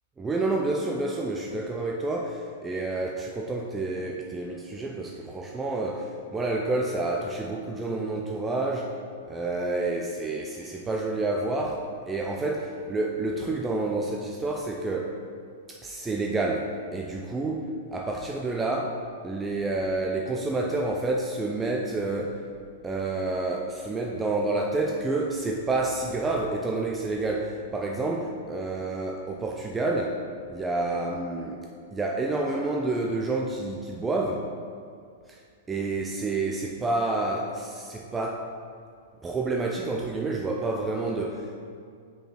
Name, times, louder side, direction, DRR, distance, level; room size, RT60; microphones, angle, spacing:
voice 1, 0.2-8.9 9.3-15.2 15.7-18.9 19.2-22.4 22.8-30.2 30.5-31.6 31.9-34.5 35.7-38.5 39.2-41.5, right 2 dB, 15° right, 0 dB, 0.6 m, -29 dB
5.2 x 4.7 x 5.9 m, 2.3 s
hypercardioid pair, 115°, 0 cm